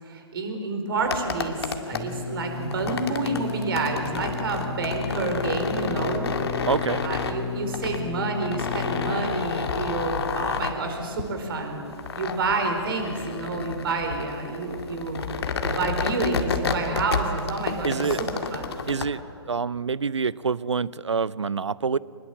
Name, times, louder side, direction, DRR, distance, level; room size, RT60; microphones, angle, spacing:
voice 1, 0.0-6.3 7.0-11.8 12.2-15.2 15.6-18.7, right 3 dB, 55° right, 4 dB, 4.6 m, -29 dB
sound 1, 1.0-19.1, left 5 dB, 60° left, 2.0 m, -30 dB
Singing, 1.9-9.1, left 5 dB, 5° left, 3.2 m, -35 dB
voice 2, 6.7-7.0 17.8-18.2 18.9-19.2 19.5-22.0, right 5 dB, 80° right, 22 dB, 0.6 m, -26 dB
24.5 x 20.5 x 7.5 m, 2.6 s
figure-of-eight pair, 125°, 15 cm